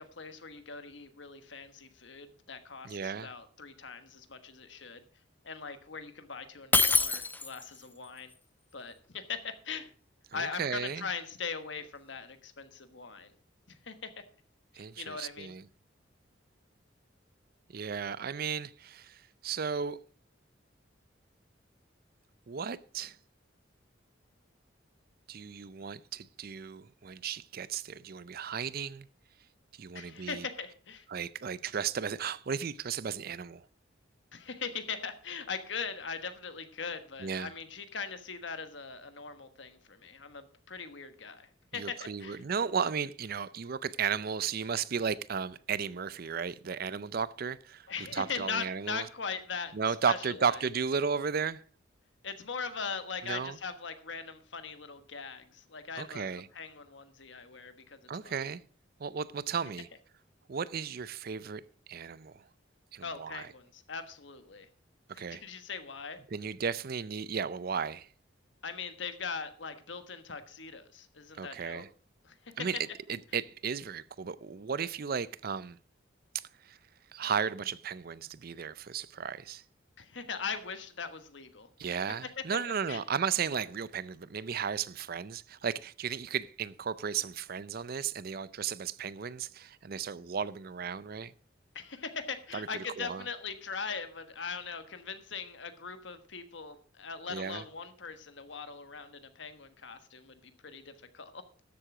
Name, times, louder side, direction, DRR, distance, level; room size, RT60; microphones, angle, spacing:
voice 1, 0.0-5.0 5.4-8.3 8.7-9.9 10.3-13.3 13.7-14.1 14.7-15.5 29.9-31.0 34.3-42.4 47.9-49.7 50.1-50.6 52.2-58.0 58.2-58.5 63.0-64.7 65.1-66.2 68.6-71.8 72.2-72.4 80.0-81.7 82.4-82.5 82.9-83.0 91.7-101.4, left 5 dB, 70° left, 1.4 m, -40 dB
voice 2, 2.8-3.3 10.3-11.1 14.7-15.6 17.7-20.0 22.5-23.2 25.3-29.1 29.8-30.5 31.1-33.6 37.2-37.5 41.7-47.9 48.1-49.1 49.7-51.6 53.2-53.6 56.0-56.5 58.1-58.6 59.0-59.9 60.5-61.6 61.9-62.4 62.9-63.5 65.2-65.4 66.3-68.1 71.4-71.9 72.6-72.8 73.1-75.8 76.3-76.8 77.1-79.6 81.8-91.3 92.5-93.2 97.3-97.6, right 6 dB, 50° right, 0.5 m, -34 dB
Shatter, 6.7-7.8, left 4 dB, 10° left, 0.5 m, -25 dB
13.0 x 7.7 x 4.9 m
head